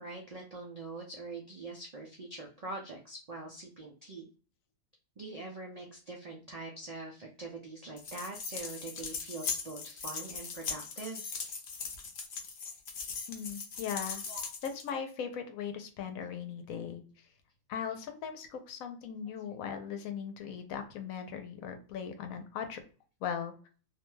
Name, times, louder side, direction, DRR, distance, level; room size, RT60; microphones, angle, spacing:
voice 1, 0.0-4.3 5.2-11.4 14.3-14.5, right 2 dB, 80° right, 0 dB, 0.3 m, -43 dB
sound 1, 8.0-14.9, left 5 dB, 60° left, 0.8 m, -39 dB
voice 2, 13.3-14.2 14.6-17.0 17.7-22.8 23.2-23.5, left 7 dB, 85° left, 6 dB, 1.1 m, -38 dB
2.6 x 2.2 x 3.1 m, 0.38 s
omnidirectional pair, 1.4 m